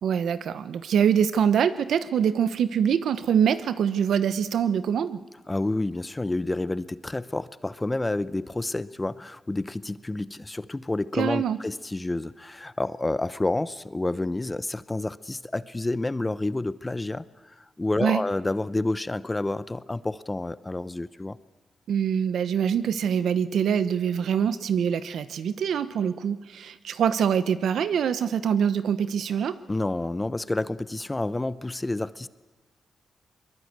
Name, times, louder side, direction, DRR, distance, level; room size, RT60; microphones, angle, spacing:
voice 1, 0.0-5.2 11.1-11.6 18.0-18.2 21.9-29.6, right 8 dB, 80° right, 13 dB, 1.0 m, -24 dB
voice 2, 5.5-17.3 17.8-21.4 29.7-32.3, left 2 dB, 20° left, 16 dB, 0.8 m, -29 dB
22.5 x 21.5 x 8.2 m, 1.2 s
cardioid pair, 75°, 0 cm